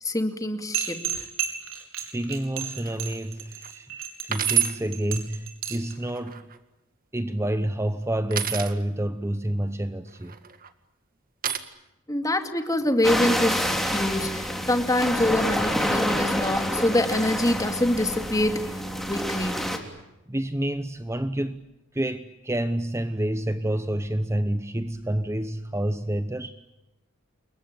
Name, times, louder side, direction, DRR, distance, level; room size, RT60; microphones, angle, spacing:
voice 1, 0.0-1.3 12.1-18.7 19.1-19.6, left 1 dB, 15° left, 7 dB, 2.4 m, -25 dB
sound 1, 0.7-5.9, right 9 dB, 90° right, 5.0 m, -32 dB
voice 2, 2.1-3.9 4.2-6.5 7.1-10.3 20.3-21.6 21.9-26.5, right 1 dB, 15° right, 11 dB, 0.9 m, -28 dB
sound 2, 2.8-3.1 3.6-3.7 4.3-4.8 5.9-6.6 8.3-8.7 10.2-10.7 11.4-11.6, right 9 dB, 45° right, 1.9 m, -27 dB
sound 3, 13.0-19.8, equal, ahead, 3.4 m, -27 dB
29.0 x 22.5 x 8.9 m, 0.95 s
head